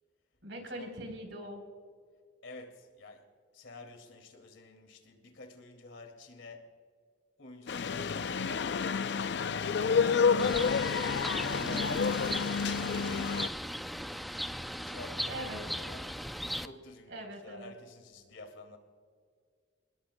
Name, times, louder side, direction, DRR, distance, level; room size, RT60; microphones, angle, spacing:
voice 1, 0.4-1.6 15.2-15.7 17.1-17.7, right 1 dB, 70° right, 4 dB, 3.9 m, -42 dB
voice 2, 2.4-3.3 3.5-6.7 7.4-9.1 9.4-14.2 14.7-16.2 16.6-18.8, left 2 dB, 90° left, 4 dB, 2.4 m, -50 dB
sound 1, 7.7-13.5, left 6 dB, 60° left, 0.4 m, -29 dB
Bird, 10.4-16.7, equal, ahead, 0.4 m, -37 dB
29.5 x 20.0 x 2.2 m, 2.1 s
head